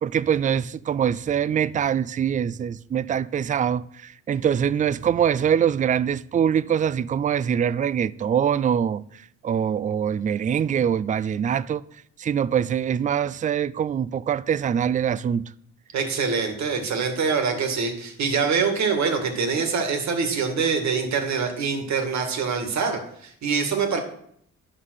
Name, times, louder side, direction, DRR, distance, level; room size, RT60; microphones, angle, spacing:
voice 1, 0.0-9.0 9.4-11.8 12.2-15.5, right 8 dB, 25° right, 0.3 m, -23 dB
voice 2, 15.9-24.0, right 5 dB, 65° right, 2.0 m, -24 dB
11.0 x 5.5 x 6.4 m
cardioid pair, 90°, 30 cm